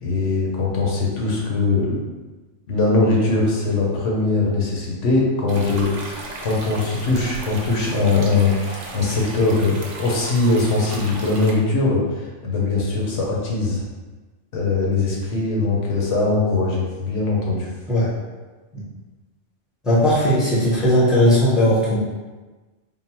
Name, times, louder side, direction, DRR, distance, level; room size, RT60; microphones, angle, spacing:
voice 1, 0.0-2.0 2.7-12.0 12.4-13.8 14.5-17.7, left 3 dB, 75° left, -3 dB, 1.2 m, -21 dB
sound 1, 5.5-11.5, right 2 dB, 75° right, 1.0 m, -35 dB
voice 2, 19.8-22.0, equal, ahead, -7 dB, 0.8 m, -17 dB
3.8 x 2.0 x 4.3 m, 1.3 s
omnidirectional pair, 1.3 m